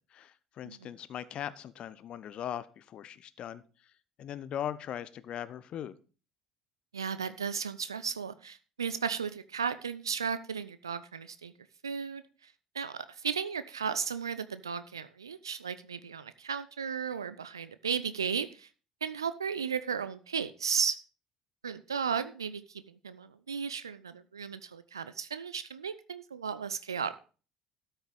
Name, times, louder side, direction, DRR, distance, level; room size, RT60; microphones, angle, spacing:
voice 1, 0.1-3.6 4.2-6.0, left 10 dB, 50° left, 15 dB, 0.8 m, -39 dB
voice 2, 6.9-11.5 11.8-18.7 19.0-21.0 21.6-27.1, right 6 dB, 85° right, 13 dB, 0.4 m, -35 dB
13.0 x 5.8 x 5.2 m, 0.37 s
figure-of-eight pair, 60°, 2 cm